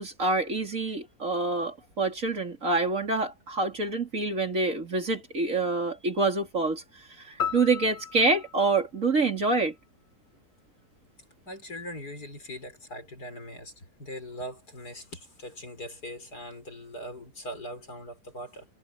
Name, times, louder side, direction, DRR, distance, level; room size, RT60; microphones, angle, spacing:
voice 1, 0.0-6.8 7.2-9.7, right 3 dB, 50° right, 3.5 m, -26 dB
sound 1, 7.4-9.9, left 7 dB, 45° left, 1.4 m, -36 dB
voice 2, 11.5-18.7, equal, 65° left, 7.2 m, -41 dB
omnidirectional pair, 1.8 m